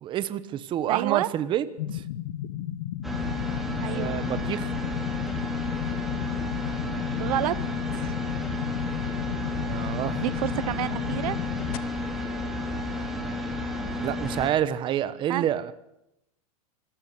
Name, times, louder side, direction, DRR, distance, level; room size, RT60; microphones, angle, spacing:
voice 1, 0.0-1.7 1.9-2.0 3.9-4.7 9.6-10.2 14.0-15.7, right 11 dB, 25° right, 14 dB, 1.2 m, -28 dB
voice 2, 0.9-1.3 3.8-4.2 7.2-7.6 7.9-8.1 10.2-11.4 11.7-11.8 15.3-15.5, right 14 dB, 75° right, 18 dB, 0.9 m, -29 dB
sound 1, 1.8-11.8, left 12 dB, 70° left, 1.4 m, -34 dB
sound 2, 3.0-14.5, left 1 dB, ahead, 3.2 m, -32 dB
26.0 x 15.0 x 8.3 m, 0.83 s
supercardioid pair, 155°, 19 cm